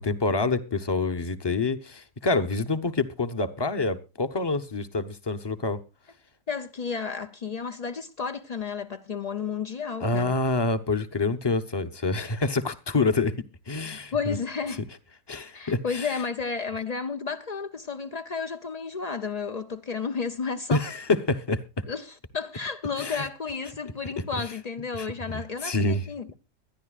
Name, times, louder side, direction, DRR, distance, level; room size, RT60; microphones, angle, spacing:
voice 1, 0.0-5.8 10.0-13.3 13.7-14.4 15.3-16.2 20.7-21.8 23.0-23.2 24.4-24.5 24.9-25.1 25.6-26.0, left 3 dB, 25° left, 0.6 m, -27 dB
voice 2, 6.5-10.3 13.8-14.8 15.5-20.8 21.9-26.3, left 5 dB, 70° left, 0.3 m, -32 dB
23.5 x 10.5 x 2.4 m
omnidirectional pair, 1.7 m